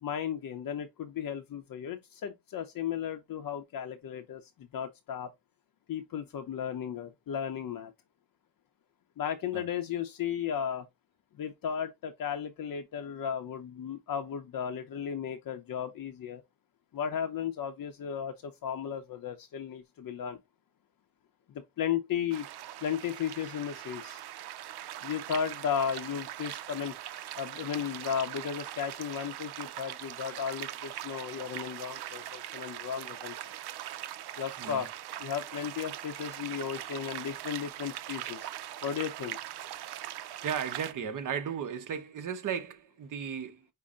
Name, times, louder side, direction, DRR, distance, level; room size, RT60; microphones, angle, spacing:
voice 1, 0.0-5.3 5.9-7.9 9.2-10.9 11.4-16.4 16.9-20.4 21.5-22.5 22.8-24.2 25.0-26.9 27.4-33.3 34.4-34.9 35.2-38.5 38.8-39.4, left 8 dB, 60° left, 0.7 m, -35 dB
sound 1, 22.3-40.9, right 13 dB, 85° right, 0.6 m, -41 dB
voice 2, 40.4-43.7, right 7 dB, 50° right, 0.9 m, -35 dB
5.4 x 2.1 x 3.5 m
cardioid pair, 115°, 38 cm